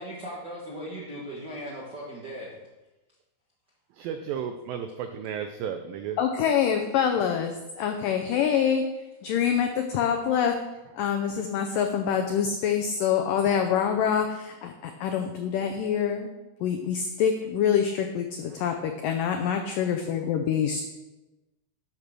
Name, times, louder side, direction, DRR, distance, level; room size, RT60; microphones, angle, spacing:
voice 1, 0.0-2.5, equal, 65° right, -5 dB, 1.0 m, -38 dB
voice 2, 4.0-6.2, right 8 dB, 85° right, 7 dB, 2.0 m, -33 dB
voice 3, 6.2-8.8 9.2-10.5 11.0-16.3 16.6-20.8, left 8 dB, 85° left, 4 dB, 1.9 m, -26 dB
10.5 x 6.7 x 6.2 m, 1.1 s
omnidirectional pair, 4.8 m